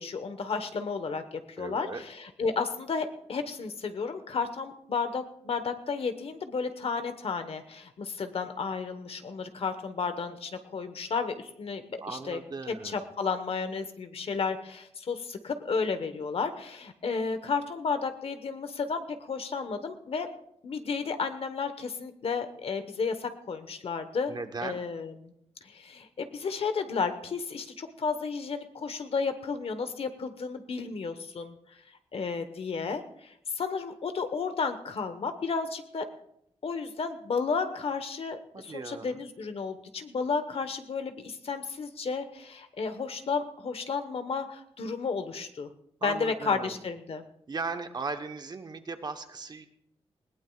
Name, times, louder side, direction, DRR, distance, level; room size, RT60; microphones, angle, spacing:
voice 1, 0.0-12.4 12.7-20.3 20.6-24.3 24.6-25.3 25.6-31.6 32.1-36.1 36.6-45.7 46.0-47.2, left 5 dB, 65° left, 9 dB, 1.2 m, -32 dB
voice 2, 1.6-2.0 12.0-13.0 24.3-24.8 38.5-39.2 46.0-46.8 47.5-49.7, right 4 dB, 40° right, 7 dB, 1.0 m, -37 dB
20.0 x 18.5 x 2.4 m, 0.75 s
wide cardioid pair, 150°, 11 cm